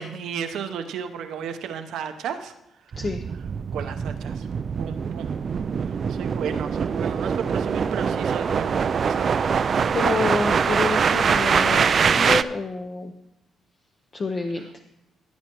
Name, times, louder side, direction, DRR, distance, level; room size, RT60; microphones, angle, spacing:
voice 1, 0.0-3.1 3.7-4.5 4.8-5.4 5.8-9.5 14.6-14.7, right 7 dB, 80° right, 7 dB, 0.8 m, -34 dB
sound 1, 2.9-12.4, right 6 dB, 50° right, 0.3 m, -23 dB
voice 2, 9.9-13.1 14.1-14.7, left 4 dB, 40° left, 5 dB, 0.7 m, -28 dB
15.5 x 8.5 x 3.0 m, 0.85 s
cardioid pair, 90°, 0 cm